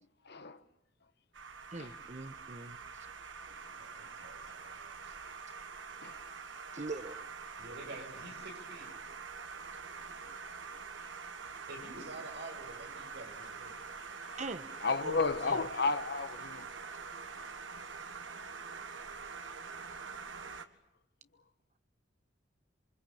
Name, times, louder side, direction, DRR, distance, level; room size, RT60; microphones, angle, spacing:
voice 1, 0.2-0.6 1.8-2.0 3.7-4.2 6.0-6.2 6.5-6.8 9.6-10.4 14.0-14.4 14.8-16.7, left 4 dB, 60° left, 1.5 m, -35 dB
sound 1, 1.3-20.7, right 5 dB, 85° right, 1.7 m, -45 dB
voice 2, 1.7-2.8 6.7-7.2 14.4-14.7 15.0-15.2 15.5-15.6, right 3 dB, 40° right, 1.3 m, -42 dB
voice 3, 3.8-5.1 7.6-8.9 11.7-13.8, right 2 dB, 65° right, 7.2 m, -48 dB
27.5 x 24.5 x 8.7 m
head